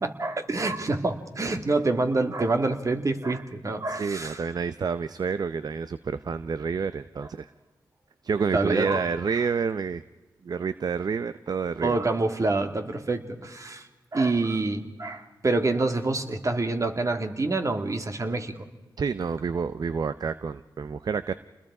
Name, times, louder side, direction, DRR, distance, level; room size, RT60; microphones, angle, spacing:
voice 1, 0.0-4.4 8.5-9.4 11.8-18.5, right 3 dB, 45° right, 6 dB, 2.3 m, -27 dB
voice 2, 3.9-7.5 8.2-10.0 10.4-12.0 19.0-21.3, right 5 dB, 60° right, 13 dB, 0.7 m, -29 dB
28.5 x 21.0 x 4.9 m, 1.2 s
cardioid pair, 50°, 8 cm